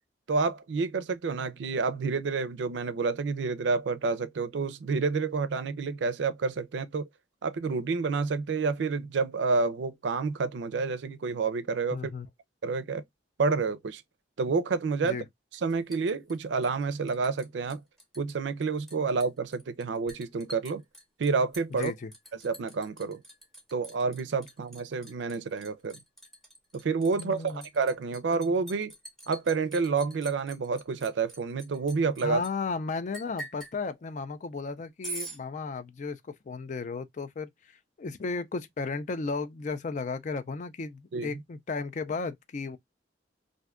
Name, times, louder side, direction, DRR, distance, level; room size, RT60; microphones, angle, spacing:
voice 1, 0.3-7.1 7.4-12.1 12.6-13.0 13.4-14.0 14.4-15.2 15.5-17.8 18.2-20.8 21.2-21.9 22.4-23.2 23.7-26.0 26.7-28.9 29.3-32.4 41.1-41.4, right 4 dB, 75° right, 0.4 m, -29 dB
voice 2, 11.9-12.3 15.0-15.2 21.7-22.1 27.1-27.6 32.2-36.2 36.5-37.5 38.0-42.8, left 4 dB, 40° left, 0.4 m, -34 dB
Liquid, 15.5-17.4 17.7-18.3 18.6-32.5 33.1-33.8 35.0-35.4, right 2 dB, ahead, 0.8 m, -45 dB
2.6 x 2.2 x 3.5 m
head